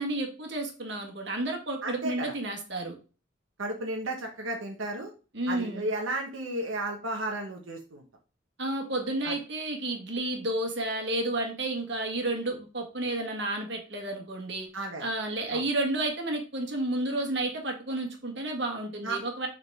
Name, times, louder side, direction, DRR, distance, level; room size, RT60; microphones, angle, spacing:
voice 1, 0.0-3.0 5.3-5.9 8.6-14.7 15.0-19.5, right 2 dB, 60° right, 2 dB, 1.7 m, -31 dB
voice 2, 1.8-2.3 3.6-5.1 5.5-8.0 9.2-9.3 14.7-15.1 15.5-15.6 19.0-19.2, right 2 dB, 90° right, 1 dB, 1.2 m, -33 dB
6.9 x 4.0 x 3.6 m, 0.34 s
head